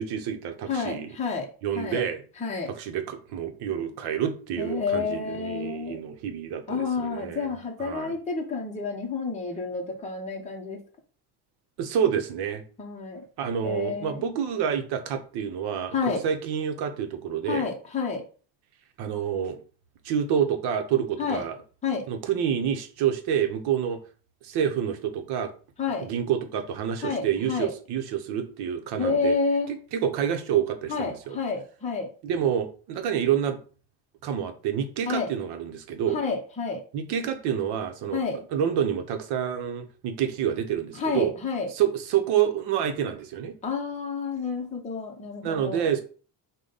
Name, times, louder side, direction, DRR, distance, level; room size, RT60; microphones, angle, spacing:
voice 1, 0.0-1.1 1.6-2.2 2.7-7.5 7.8-8.1 11.8-12.6 13.4-15.9 16.2-17.6 19.0-19.6 20.0-21.6 22.1-24.0 24.4-25.5 26.0-29.3 29.7-31.4 32.2-33.6 34.2-36.2 36.9-38.2 38.5-41.3 41.7-43.6 45.4-46.0, right 8 dB, 70° right, 7 dB, 0.8 m, -28 dB
voice 2, 0.7-2.0 2.4-2.7 4.6-6.0 6.7-10.8 12.8-13.3 13.6-14.3 15.9-16.2 17.5-18.3 21.2-21.4 21.8-22.1 25.8-26.1 27.0-27.7 29.0-29.7 30.9-32.1 35.1-35.3 36.1-36.8 38.1-38.4 40.9-41.7 43.6-45.9, left 4 dB, 15° left, 1 dB, 0.6 m, -29 dB
4.9 x 2.2 x 3.9 m, 0.38 s
cardioid pair, 165°, 42 cm